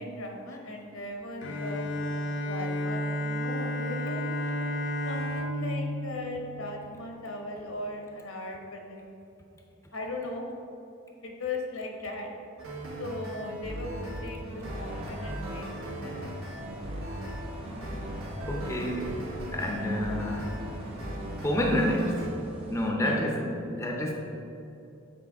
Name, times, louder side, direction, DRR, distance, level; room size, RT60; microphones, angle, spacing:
voice 1, 0.0-1.8 2.4-4.2 5.0-9.1 9.9-10.5 11.2-12.3 13.0-16.3 22.9-23.2, left 2 dB, 80° left, 1 dB, 1.1 m, -38 dB
Bowed string instrument, 1.4-7.3, equal, 60° left, 0.6 m, -32 dB
sound 1, 12.6-22.3, right 1 dB, 85° right, 1.2 m, -38 dB
sound 2, 14.6-22.9, equal, 30° right, 1.0 m, -44 dB
voice 2, 18.5-20.6 21.4-22.3 22.7-24.1, equal, 15° left, 0 dB, 0.6 m, -29 dB
8.3 x 4.5 x 3.5 m, 2.8 s
head